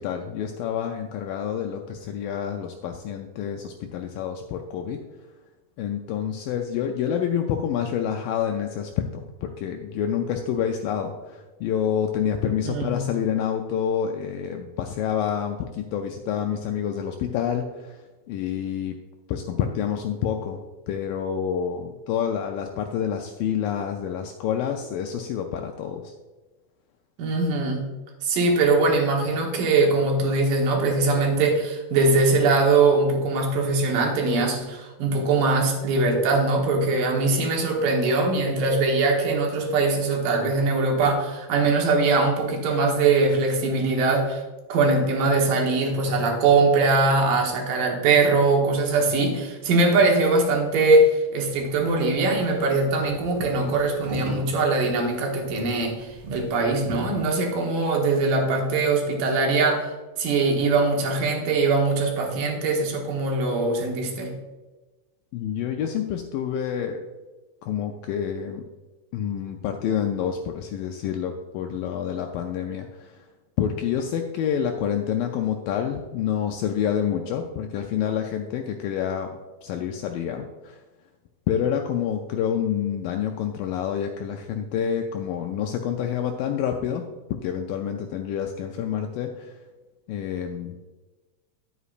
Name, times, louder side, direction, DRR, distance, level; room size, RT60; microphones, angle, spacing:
voice 1, 0.0-5.0 5.8-19.0 19.3-26.1 65.3-67.1 67.6-68.6 69.1-73.3 73.6-79.3 79.6-80.8 81.5-89.6 90.1-90.8, left 8 dB, 80° left, 4 dB, 2.0 m, -28 dB
voice 2, 12.6-13.0 27.2-27.9 28.2-44.4 44.7-64.3, right 3 dB, 70° right, 0 dB, 2.8 m, -22 dB
sound 1, 51.5-57.3, right 2 dB, 50° right, 2.4 m, -38 dB
11.0 x 8.1 x 2.5 m, 1.2 s
omnidirectional pair, 4.4 m